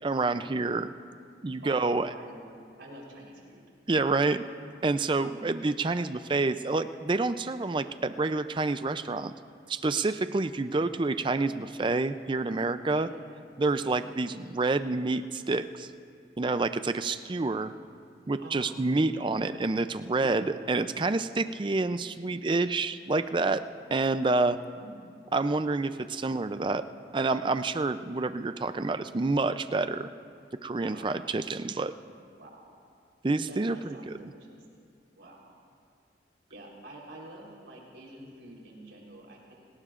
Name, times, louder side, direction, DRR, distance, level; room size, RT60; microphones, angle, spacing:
voice 1, 0.0-0.9 1.4-2.1 3.9-4.4 4.8-9.3 9.7-13.1 13.6-15.9 16.4-17.7 18.3-23.6 23.9-24.6 25.3-26.8 27.1-30.1 30.6-31.9 33.2-33.8 34.1-34.2, right 3 dB, 25° right, 11 dB, 0.4 m, -28 dB
voice 2, 1.6-3.7 5.2-5.5 12.9-13.1 13.8-13.9 18.4-19.0 20.2-20.5 24.7-25.1 30.9-31.2 32.4-32.7 33.5-34.5 35.2-35.4 36.5-39.5, right 1 dB, 90° right, -2 dB, 3.8 m, -48 dB
29.0 x 18.5 x 2.5 m, 2.3 s
head